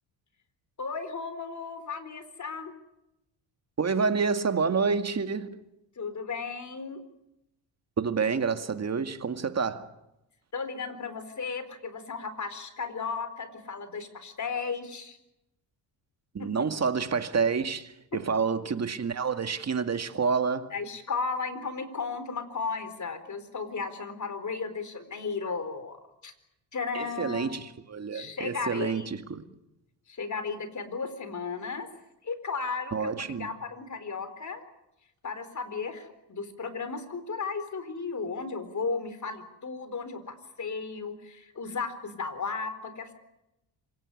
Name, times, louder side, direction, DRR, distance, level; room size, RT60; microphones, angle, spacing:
voice 1, 0.8-2.7 6.0-7.0 10.5-15.2 16.4-16.5 20.7-26.3 26.7-27.6 28.1-29.1 30.1-31.9 32.2-34.6 35.2-43.1, left 4 dB, 40° left, 4.2 m, -35 dB
voice 2, 3.8-5.5 8.0-9.9 16.3-20.7 26.9-29.4 32.9-33.5, right 5 dB, 35° right, 2.2 m, -28 dB
26.5 x 17.5 x 9.9 m
cardioid pair, 85°, 44 cm